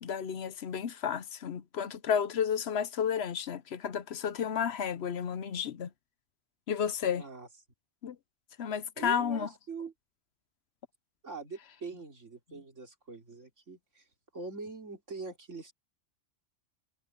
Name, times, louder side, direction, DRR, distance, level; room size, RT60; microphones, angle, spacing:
voice 1, 0.0-5.9 6.7-7.2 8.0-8.2 8.6-9.5, left 7 dB, 65° left, 1.0 m, -32 dB
voice 2, 7.2-7.5 9.0-9.9 11.2-14.0 14.3-15.7, right 3 dB, 85° right, 3.9 m, -43 dB
omnidirectional pair, 1.2 m